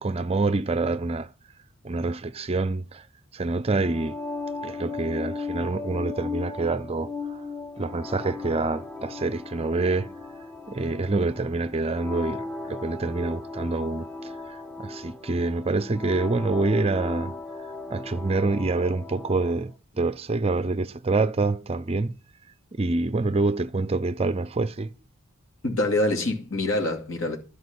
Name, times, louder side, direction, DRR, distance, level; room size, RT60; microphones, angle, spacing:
voice 1, 0.0-1.3 1.8-3.0 3.3-4.2 4.6-7.1 7.8-10.1 10.7-14.1 14.8-17.4 17.9-19.7 20.0-22.1 22.7-24.9, right 3 dB, 25° right, 0.5 m, -26 dB
sound 1, 3.7-19.6, left 3 dB, 5° left, 0.9 m, -37 dB
voice 2, 25.6-27.4, left 2 dB, 60° left, 2.4 m, -25 dB
11.5 x 4.9 x 8.3 m
head